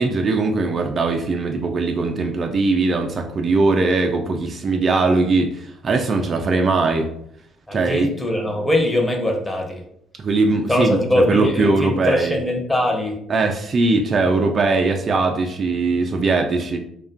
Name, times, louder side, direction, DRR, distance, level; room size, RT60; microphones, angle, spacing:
voice 1, 0.0-7.1 7.7-8.1 10.2-12.4 13.3-16.8, right 3 dB, 45° right, 3 dB, 0.3 m, -20 dB
voice 2, 7.7-9.8 10.7-13.2, left 1 dB, 15° left, 1 dB, 0.7 m, -21 dB
2.4 x 2.2 x 2.4 m, 0.70 s
hypercardioid pair, 50°, 0 cm